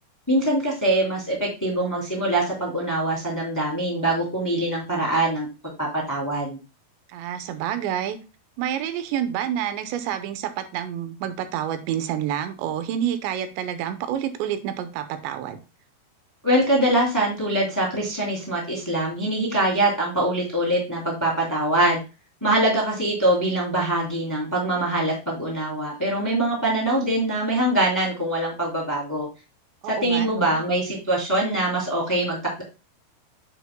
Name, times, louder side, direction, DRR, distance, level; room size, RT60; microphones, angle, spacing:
voice 1, 0.3-5.5 5.8-6.6 16.4-22.0 22.4-29.3 29.9-32.6, right 1 dB, 5° left, -2 dB, 1.8 m, -23 dB
voice 2, 7.1-8.2 8.6-15.6 29.8-30.6, right 10 dB, 85° right, 10 dB, 3.1 m, -28 dB
8.4 x 7.9 x 2.2 m, 0.30 s
omnidirectional pair, 5.0 m